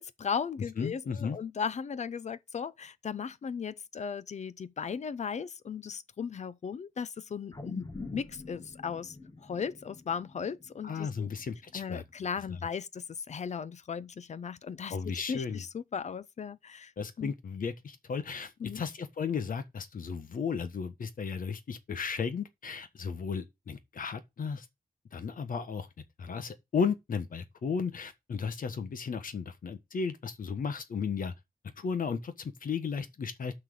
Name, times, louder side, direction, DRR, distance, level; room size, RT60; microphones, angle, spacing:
voice 1, 0.0-9.1 9.4-11.3 11.7-15.0 15.3-16.9 17.2-17.3 18.6-18.8, left 6 dB, 55° left, 0.6 m, -37 dB
voice 2, 0.8-1.4 10.8-12.0 14.9-15.6 17.0-24.7 25.1-25.9 26.2-31.3 31.8-33.5, left 6 dB, 75° left, 1.3 m, -34 dB
sound 1, 7.5-12.0 12.4-12.5, left 3 dB, 25° left, 1.2 m, -46 dB
6.1 x 5.8 x 7.0 m
wide cardioid pair, 145°, 15 cm